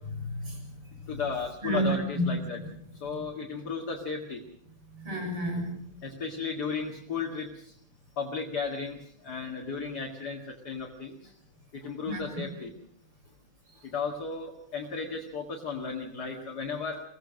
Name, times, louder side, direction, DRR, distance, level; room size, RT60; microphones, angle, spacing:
voice 1, 0.2-0.7 1.6-2.3 4.9-5.6 12.1-12.2, right 1 dB, 85° right, 1 dB, 7.6 m, -30 dB
voice 2, 1.1-2.6 3.0-4.4 6.0-7.7 8.2-9.0 9.2-11.3 11.7-12.7 13.8-17.0, left 5 dB, 50° left, 1 dB, 2.4 m, -34 dB
23.0 x 17.5 x 6.3 m, 0.68 s
omnidirectional pair, 2.4 m